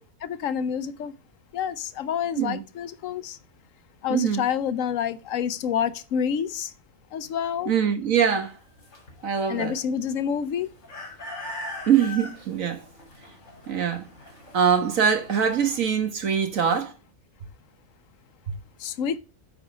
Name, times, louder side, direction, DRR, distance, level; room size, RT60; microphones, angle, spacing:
voice 1, 0.2-1.1 1.5-3.4 4.0-6.7 7.1-7.7 9.5-10.7 18.8-19.2, left 8 dB, 80° left, 1.1 m, -28 dB
voice 2, 4.1-4.4 7.6-8.5 9.2-9.8 11.9-12.8 13.7-14.0 14.5-16.9, right 7 dB, 90° right, 1.7 m, -23 dB
sound 1, 8.4-15.8, left 1 dB, 60° left, 3.2 m, -41 dB
8.8 x 4.3 x 4.9 m
omnidirectional pair, 1.4 m